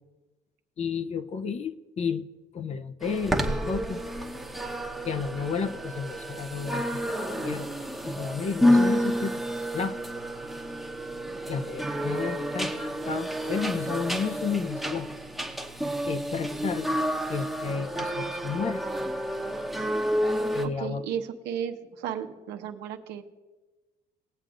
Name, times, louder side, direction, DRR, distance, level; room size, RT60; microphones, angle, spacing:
voice 1, 0.8-2.2 2.5-4.0 5.0-7.7 8.0-9.4 9.7-10.0 11.5-15.1 15.6-15.7 16.1-16.9 17.3-18.8 20.5-21.0, left 6 dB, 40° left, 10 dB, 0.6 m, -32 dB
sound 1, 3.0-20.7, equal, ahead, 1.0 m, -29 dB
voice 2, 20.6-23.2, right 8 dB, 85° right, 6 dB, 1.0 m, -34 dB
20.0 x 7.8 x 2.5 m, 1.2 s
cardioid pair, 110°, 17 cm